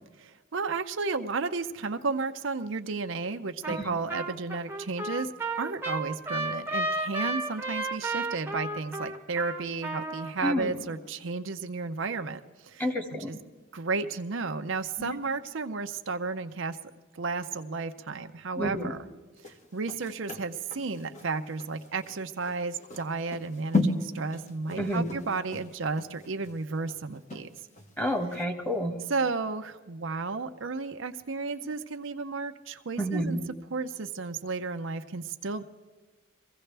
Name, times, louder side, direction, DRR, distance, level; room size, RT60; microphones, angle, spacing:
voice 1, 0.2-5.3 5.6-12.9 13.3-13.4 13.7-16.8 17.1-19.0 19.4-27.5 29.1-33.4 33.7-35.6, right 4 dB, 65° right, 7 dB, 0.6 m, -33 dB
Trumpet, 3.6-3.8 4.1-10.3, right 2 dB, 10° right, 1.0 m, -32 dB
voice 2, 10.4-10.7 12.8-13.3 15.0-15.1 18.6-18.9 24.8-25.1 28.0-29.0 33.0-33.4, equal, 10° left, 3 dB, 1.6 m, -29 dB
sound 1, 19.4-27.9 28.3-28.4, left 2 dB, 35° left, 1.4 m, -35 dB
23.5 x 16.0 x 3.4 m, 1.3 s
head